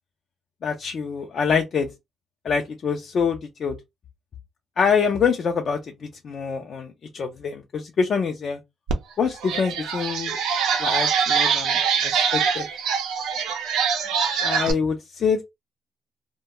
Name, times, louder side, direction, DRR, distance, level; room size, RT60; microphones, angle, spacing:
voice 1, 0.6-1.9 2.4-3.8 4.8-8.6 9.2-10.4 10.8-12.7 14.4-15.4, left 6 dB, 55° left, 0.4 m, -25 dB
sound 1, 8.9-9.0 9.4-14.7, right 6 dB, 90° right, 0.5 m, -23 dB
2.2 x 2.2 x 2.8 m
cardioid pair, 90°, 0 cm